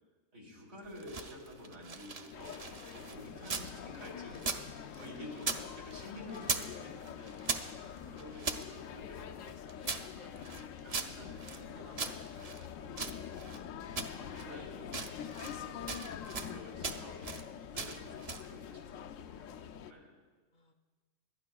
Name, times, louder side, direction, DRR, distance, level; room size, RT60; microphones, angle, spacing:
voice 1, 0.3-2.6 2.9-4.4 5.0-7.4 7.8-13.6 14.2-15.9 16.4-17.2 17.7-20.1, left 1 dB, 85° right, -2 dB, 3.7 m, -50 dB
sound 1, 0.9-3.7 4.0-5.6 5.9-6.7 7.0-8.6 9.2-11.6 12.0-13.6 14.0-14.5 14.8-15.6 15.9-16.5 16.8-17.4 17.8-18.5, right 4 dB, 40° right, 0.6 m, -39 dB
sound 2, 2.3-19.9, left 8 dB, 80° left, 1.0 m, -45 dB
voice 2, 7.6-8.3 20.5-20.7, equal, 45° left, 3 dB, 0.7 m, -62 dB
27.0 x 12.0 x 2.3 m, 1.5 s
omnidirectional pair, 1.4 m